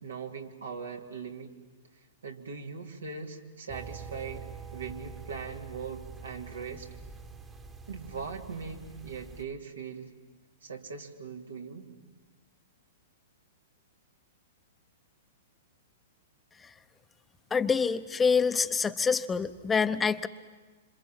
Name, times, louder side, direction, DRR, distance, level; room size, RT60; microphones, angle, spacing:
voice 1, 0.0-1.5 2.2-4.5 4.7-6.9 7.9-10.1 10.6-11.9, right 5 dB, 85° right, 1 dB, 2.8 m, -40 dB
sound 1, 3.7-9.4, right 5 dB, 15° right, 1.3 m, -45 dB
voice 2, 17.5-20.3, left 5 dB, 15° left, 11 dB, 0.8 m, -26 dB
26.5 x 26.5 x 7.4 m, 1.3 s
hypercardioid pair, 115°, 0 cm